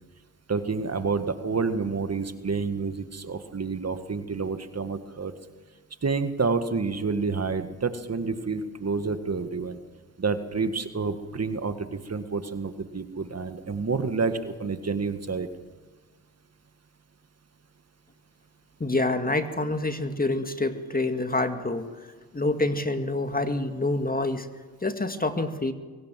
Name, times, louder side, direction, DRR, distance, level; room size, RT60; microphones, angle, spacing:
voice 1, 0.5-5.3 6.0-9.8 10.2-15.5, right 4 dB, 40° right, 9 dB, 1.9 m, -29 dB
voice 2, 18.8-21.9 22.3-24.5 24.8-25.7, left 2 dB, 20° left, 8 dB, 2.2 m, -27 dB
23.0 x 18.5 x 7.7 m, 1.4 s
supercardioid pair, 50°, 39 cm